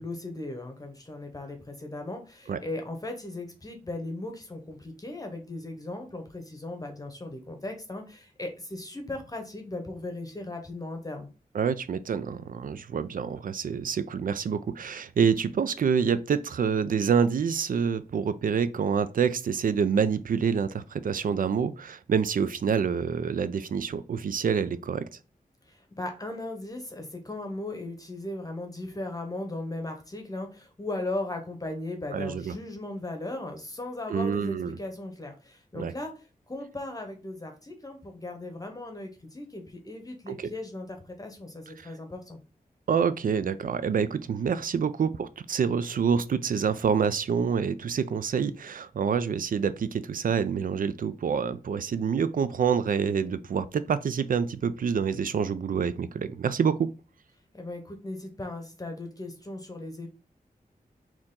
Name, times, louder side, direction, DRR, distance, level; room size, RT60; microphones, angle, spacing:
voice 1, 0.0-11.3 25.7-42.4 57.5-60.1, left 2 dB, 25° left, 0.8 m, -37 dB
voice 2, 11.5-25.1 32.1-32.5 34.1-34.7 35.7-35.9 40.3-40.4 42.9-56.9, right 6 dB, 65° right, 0.4 m, -27 dB
4.4 x 2.9 x 3.7 m
wide cardioid pair, 115°, 15 cm